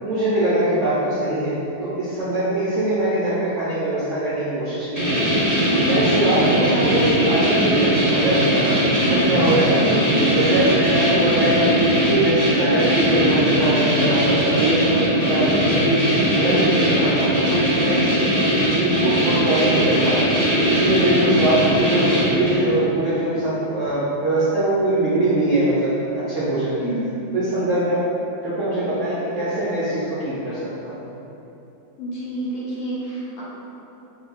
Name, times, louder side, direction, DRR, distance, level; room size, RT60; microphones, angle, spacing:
voice 1, 0.0-1.6 1.8-5.2 5.7-8.8 9.1-20.3 20.7-26.9 27.3-28.0 28.4-31.0, right 1 dB, 70° right, -10 dB, 0.7 m, -22 dB
sound 1, 5.0-22.7, right 1 dB, 15° right, 0.8 m, -20 dB
voice 2, 32.0-33.4, right 1 dB, 65° left, -7 dB, 1.0 m, -29 dB
2.9 x 2.2 x 3.9 m, 3.0 s
omnidirectional pair, 1.8 m